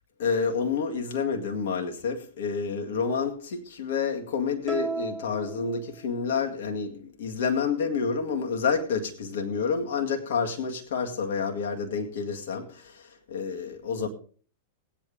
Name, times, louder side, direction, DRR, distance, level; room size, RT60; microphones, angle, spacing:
voice 1, 0.2-14.1, left 5 dB, 65° left, 2.0 m, -29 dB
sound 1, 4.7-6.5, right 4 dB, 15° right, 1.2 m, -36 dB
19.0 x 8.8 x 3.8 m
hypercardioid pair, 100°, 0 cm